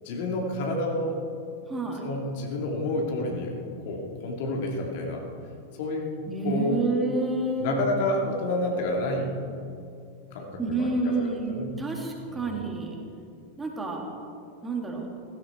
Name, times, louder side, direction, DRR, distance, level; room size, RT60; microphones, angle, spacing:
voice 1, 0.0-1.2 2.0-3.5 3.8-5.2 5.8-6.1 6.4-6.8 7.6-9.3 10.3-11.8 12.3-12.5, left 1 dB, 50° left, 0 dB, 2.7 m, -29 dB
voice 2, 1.7-2.1 6.3-7.8 10.6-13.0 13.6-14.0 14.6-15.1, right 3 dB, 10° right, 0 dB, 2.7 m, -29 dB
17.0 x 16.5 x 4.6 m, 2.5 s
figure-of-eight pair, 90°, 0 cm